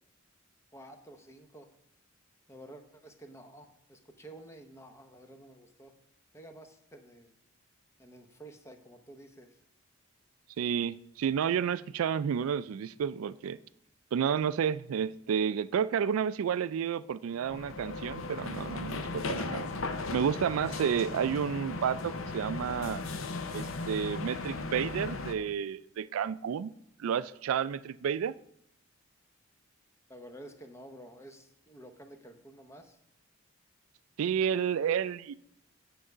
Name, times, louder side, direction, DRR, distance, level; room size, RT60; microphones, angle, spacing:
voice 1, 0.7-1.7 2.5-5.9 6.3-7.4 8.0-9.6 30.1-33.0, right 1 dB, 15° left, 6 dB, 0.8 m, -51 dB
voice 2, 10.6-13.6 14.1-19.7 20.1-23.0 23.5-26.7 27.0-28.4 34.2-35.3, right 8 dB, 85° right, 16 dB, 0.3 m, -31 dB
sound 1, 17.3-25.3, left 3 dB, 75° left, 0.7 m, -37 dB
8.8 x 4.7 x 6.7 m, 0.75 s
head